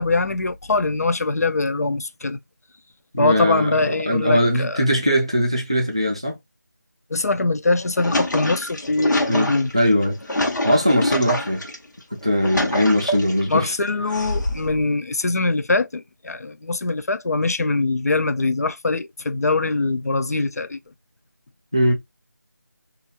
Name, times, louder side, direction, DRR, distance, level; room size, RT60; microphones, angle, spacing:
voice 1, 0.0-2.4 3.2-4.8 7.1-9.7 13.5-20.8, left 3 dB, 60° left, 0.4 m, -22 dB
voice 2, 3.1-6.4 9.3-10.2 10.6-11.6 12.1-13.7 21.7-21.9, equal, 20° right, 0.3 m, -20 dB
sound 1, 7.7-11.8 12.2-13.5 14.1-14.8, left 1 dB, 80° left, 0.9 m, -26 dB
2.4 x 2.1 x 3.0 m
figure-of-eight pair, 175°, 10 cm